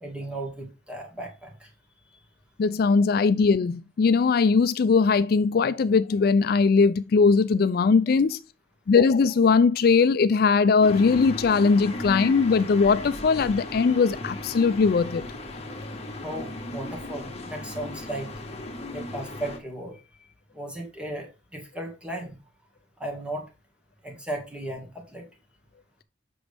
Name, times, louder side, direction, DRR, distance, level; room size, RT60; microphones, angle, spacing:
voice 1, 0.0-1.7 16.2-18.3 18.9-20.0 20.5-22.4 23.0-23.5 24.0-25.3, right 1 dB, 5° right, 2.0 m, -35 dB
voice 2, 2.6-8.4 8.9-15.3, left 5 dB, 60° left, 0.4 m, -20 dB
sound 1, 10.8-19.6, left 1 dB, 35° left, 1.4 m, -36 dB
7.8 x 6.2 x 3.5 m
head